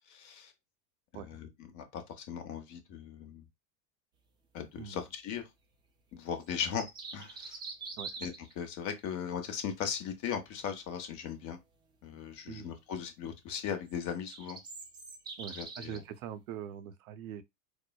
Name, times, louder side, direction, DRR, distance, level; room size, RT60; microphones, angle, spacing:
voice 1, 0.1-0.5 1.2-1.5 1.7-3.4 4.5-5.4 6.1-6.9 7.1-7.6 8.2-11.6 12.0-14.6 15.6-16.0, left 8 dB, 40° left, 0.9 m, -38 dB
sound 1, 6.5-8.5 13.9-16.0, right 4 dB, 10° right, 0.3 m, -44 dB
voice 2, 15.4-17.4, right 9 dB, 60° right, 0.6 m, -43 dB
4.6 x 2.0 x 2.2 m
hypercardioid pair, 85°, 47 cm